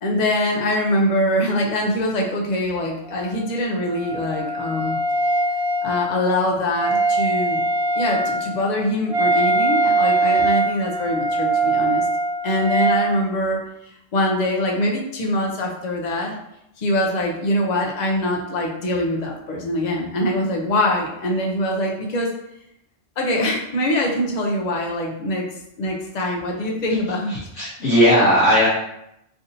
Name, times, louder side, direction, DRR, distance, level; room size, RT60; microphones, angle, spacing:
voice 1, 0.0-5.0 5.8-7.6 7.9-12.1 12.4-16.4 16.8-22.3 23.2-25.4 25.8-27.4, left 1 dB, 45° left, 0 dB, 0.6 m, -23 dB
Wind instrument woodwind instrument, 3.1-13.1, right 2 dB, 45° right, 0.4 m, -22 dB
voice 2, 27.3-28.7, equal, 75° left, -8 dB, 1.1 m, -17 dB
3.5 x 2.6 x 2.6 m, 0.81 s
omnidirectional pair, 1.2 m